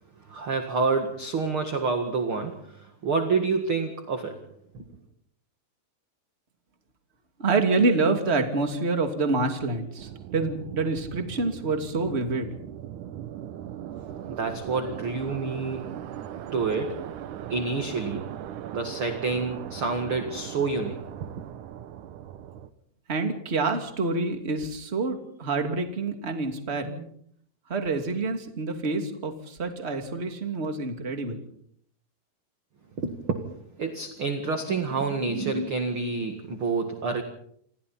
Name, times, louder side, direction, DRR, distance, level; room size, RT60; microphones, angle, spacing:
voice 1, 0.3-4.5 4.7-4.8 14.3-16.1 16.5-17.1 17.5-18.4 18.7-21.4 33.0-33.4 33.8-37.2, right 4 dB, 50° right, 5 dB, 1.7 m, -28 dB
voice 2, 7.4-12.5 23.1-27.1 27.7-31.4, right 3 dB, 20° right, 5 dB, 2.0 m, -27 dB
sound 1, 10.0-22.7, right 10 dB, 75° right, 1.8 m, -39 dB
28.5 x 28.0 x 4.4 m, 0.66 s
omnidirectional pair, 5.1 m